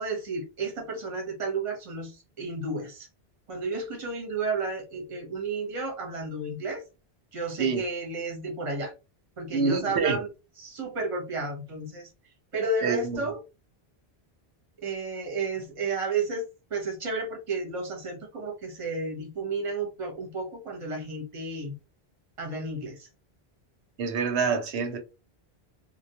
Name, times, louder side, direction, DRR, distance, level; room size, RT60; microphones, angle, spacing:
voice 1, 0.0-3.1 3.5-6.8 7.3-8.9 9.4-10.3 10.6-12.1 12.5-13.4 14.8-21.7 22.4-23.1, right 3 dB, 35° right, 0.8 m, -32 dB
voice 2, 9.5-10.2 12.8-13.3 24.0-25.0, right 5 dB, 90° right, 0.9 m, -26 dB
2.2 x 2.2 x 2.8 m
omnidirectional pair, 1.1 m